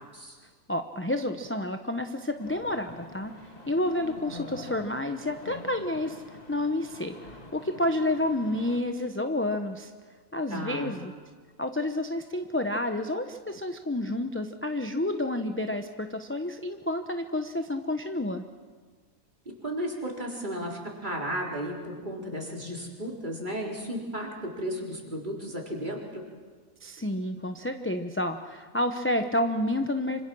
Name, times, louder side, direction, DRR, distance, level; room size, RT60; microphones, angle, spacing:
voice 1, 0.7-3.3 3.7-6.2 6.5-7.2 7.5-9.9 10.3-11.1 11.6-18.4 26.8-30.2, left 1 dB, 10° left, 6 dB, 0.7 m, -29 dB
sound 1, 2.4-8.8, left 2 dB, 30° left, 2.2 m, -46 dB
voice 2, 10.5-10.9 19.5-26.2, equal, 35° right, -1 dB, 4.2 m, -34 dB
26.0 x 26.0 x 6.2 m, 1.6 s
omnidirectional pair, 1.4 m